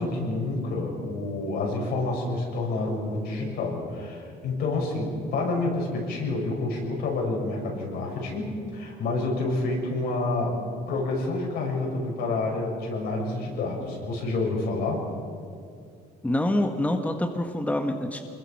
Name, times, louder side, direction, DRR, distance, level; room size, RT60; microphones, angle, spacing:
voice 1, 0.0-10.6 10.9-15.0, left 2 dB, 75° left, -1 dB, 6.6 m, -28 dB
voice 2, 16.2-18.2, left 1 dB, 10° left, 5 dB, 1.4 m, -26 dB
24.5 x 21.5 x 6.0 m, 2.3 s
cardioid pair, 110°, 17 cm